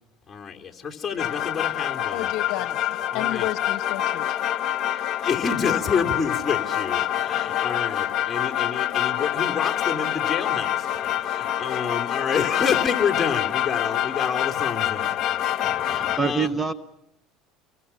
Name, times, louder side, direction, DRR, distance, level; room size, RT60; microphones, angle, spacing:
voice 1, 0.3-2.3 3.1-3.5 5.2-15.5 15.8-16.5, left 6 dB, 20° left, 3.4 m, -28 dB
sound 1, 1.2-16.2, left 12 dB, 45° left, 1.8 m, -26 dB
voice 2, 2.1-4.4, left 15 dB, 65° left, 1.0 m, -32 dB
voice 3, 15.6-16.7, right 5 dB, 15° right, 1.1 m, -27 dB
30.0 x 23.0 x 5.9 m
supercardioid pair, 100°, 0 cm